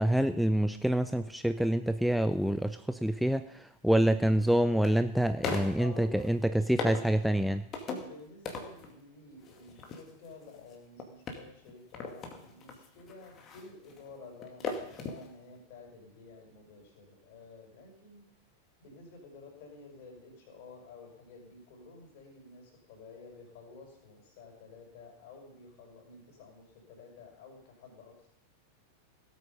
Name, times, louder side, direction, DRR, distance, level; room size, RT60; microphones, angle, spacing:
voice 1, 0.0-7.6, right 1 dB, ahead, 11 dB, 0.5 m, -27 dB
sound 1, 2.5-2.6 4.0-4.9 5.4-6.3 6.8-7.2 7.7-8.2 8.4-9.0 9.4-15.3 15.5-15.6, left 4 dB, 30° left, 2.2 m, -39 dB
voice 2, 5.7-7.5 8.0-18.3 18.8-28.3, left 3 dB, 50° left, 0 dB, 5.4 m, -51 dB
17.0 x 8.5 x 5.4 m, 0.76 s
figure-of-eight pair, 90°, 0 cm